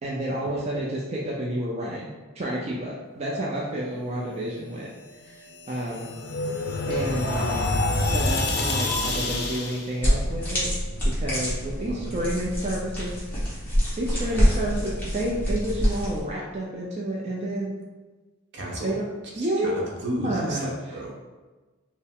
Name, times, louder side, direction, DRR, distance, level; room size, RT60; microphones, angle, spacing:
voice 1, 0.0-2.1 2.4-4.9 5.2-6.1 6.9-7.8 8.1-10.7 11.0-13.2 14.0-17.8 18.8-19.0 19.4-19.7 20.2-21.0, right 1 dB, 30° right, -4 dB, 0.4 m, -30 dB
sound 1, 5.4-9.9, left 2 dB, 50° left, 0.5 m, -27 dB
sound 2, 10.0-16.2, equal, 10° left, 1.2 m, -26 dB
voice 2, 11.8-12.3 14.1-14.6 18.5-19.0 19.3-21.1, right 1 dB, 55° right, -2 dB, 0.8 m, -34 dB
4.3 x 2.0 x 3.5 m, 1.3 s
head